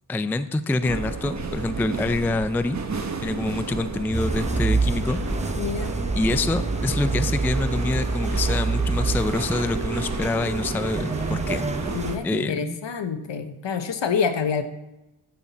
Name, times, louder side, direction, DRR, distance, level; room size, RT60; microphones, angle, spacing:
voice 1, 0.1-2.8 3.2-5.2 6.2-11.7 12.2-12.8, left 2 dB, 5° left, 11 dB, 0.4 m, -26 dB
sound 1, 0.8-12.2, right 4 dB, 35° right, 1.0 m, -32 dB
sound 2, 4.1-12.2, right 3 dB, 15° right, 0.8 m, -27 dB
voice 2, 5.6-5.9 11.9-14.6, left 6 dB, 65° left, 9 dB, 1.1 m, -27 dB
15.0 x 5.8 x 4.1 m, 0.96 s
cardioid pair, 70°, 48 cm